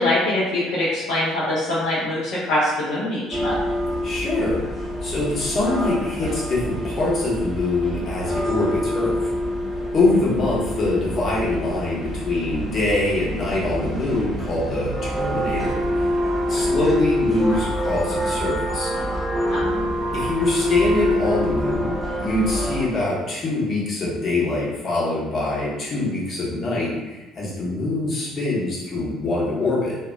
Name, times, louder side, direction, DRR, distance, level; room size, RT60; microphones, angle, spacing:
voice 1, 0.0-3.6 19.5-19.9, left 1 dB, 65° left, -9 dB, 0.5 m, -23 dB
sound 1, 3.3-22.9, equal, 10° right, 0.7 m, -26 dB
voice 2, 4.0-4.6 5.0-9.2 9.9-16.1 16.5-18.9 20.1-21.9 22.2-30.0, left 2 dB, 40° left, -6 dB, 0.8 m, -24 dB
2.5 x 2.2 x 2.3 m, 1.1 s
figure-of-eight pair, 50°, 0 cm